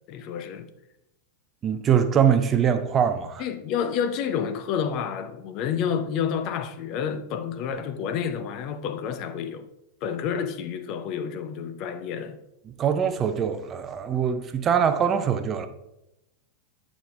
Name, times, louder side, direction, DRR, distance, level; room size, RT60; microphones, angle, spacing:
voice 1, 0.1-0.7 3.4-9.7 10.0-12.4, left 7 dB, 40° left, 0.6 m, -29 dB
voice 2, 1.6-3.4 12.7-15.7, right 8 dB, 25° right, 0.6 m, -23 dB
8.9 x 5.1 x 3.3 m
figure-of-eight pair, 90°, 0 cm